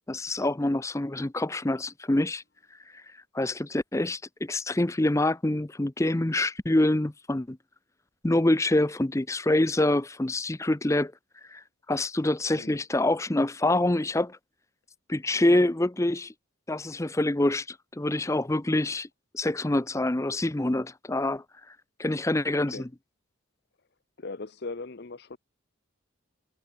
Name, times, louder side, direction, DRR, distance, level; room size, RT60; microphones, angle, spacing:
voice 1, 0.1-2.4 3.3-7.6 8.2-11.1 11.5-11.6 11.9-14.4 15.1-16.3 16.7-19.1 19.3-21.4 22.0-22.9, left 1 dB, 15° left, 0.6 m, -26 dB
voice 2, 24.2-25.4, left 3 dB, 50° left, 0.7 m, -39 dB
head